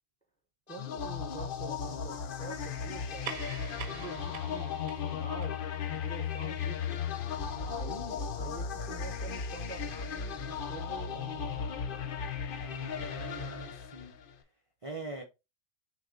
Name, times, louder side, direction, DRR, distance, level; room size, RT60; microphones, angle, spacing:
sound 1, 0.7-14.3, left 7 dB, 60° left, 0.6 m, -36 dB
voice 1, 0.7-5.6 5.8-7.0 7.6-11.6, right 2 dB, 5° left, 0.7 m, -46 dB
sound 2, 3.0-7.9, right 8 dB, 80° right, 1.1 m, -47 dB
voice 2, 7.5-8.0 12.4-14.2 14.8-15.2, right 2 dB, 30° right, 0.6 m, -43 dB
6.4 x 2.2 x 3.7 m
omnidirectional pair, 1.5 m